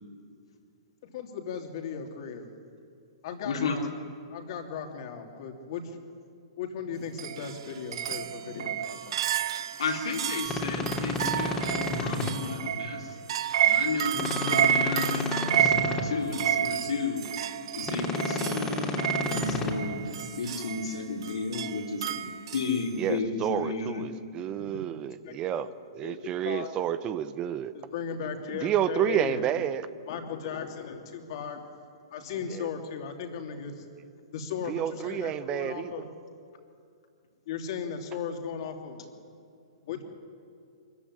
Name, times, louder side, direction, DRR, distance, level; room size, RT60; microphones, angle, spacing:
voice 1, 1.0-2.5 3.2-3.9 4.3-5.8 6.6-9.2 24.6-24.8 25.2-25.7 26.0-27.2 27.7-29.5 30.1-31.6 32.1-33.7 34.3-36.1 37.5-39.0 39.9-40.0, left 7 dB, 55° left, 4 dB, 3.1 m, -37 dB
voice 2, 3.4-3.8 9.8-13.1 13.6-17.3 17.7-24.1, left 4 dB, 75° left, 1 dB, 3.9 m, -33 dB
sound 1, 7.2-22.8, right 10 dB, 60° right, 0.8 m, -30 dB
sound 2, 10.4-12.3 14.1-16.0 17.8-19.7, left 2 dB, 15° left, 2.9 m, -31 dB
voice 3, 23.0-25.7 25.9-27.7 28.5-29.9 32.5-32.7 34.7-36.1, right 10 dB, 30° right, 14 dB, 0.8 m, -30 dB
24.5 x 14.5 x 9.9 m, 2.5 s
hypercardioid pair, 130°, 3 cm